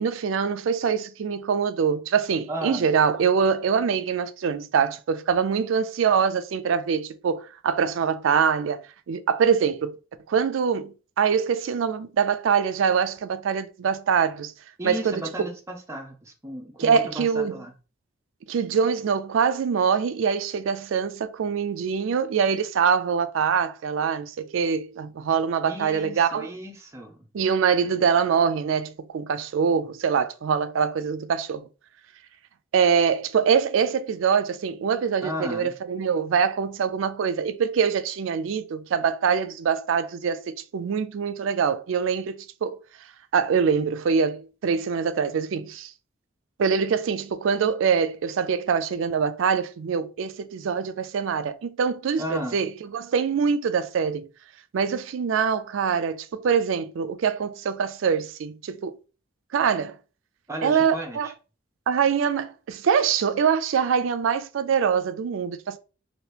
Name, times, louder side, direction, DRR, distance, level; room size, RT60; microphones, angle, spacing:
voice 1, 0.0-10.0 10.3-14.5 14.8-15.3 16.8-17.6 18.5-26.5 27.3-31.7 32.7-42.8 43.3-45.9 46.6-54.3 54.7-59.0 59.5-60.0 60.6-61.3 61.9-65.8, right 6 dB, 80° right, 0.3 m, -24 dB
voice 2, 2.5-2.9 14.8-17.7 25.7-27.2 35.2-35.7 52.2-52.6 60.5-61.2, right 1 dB, 15° right, 0.5 m, -34 dB
2.9 x 2.6 x 3.3 m
head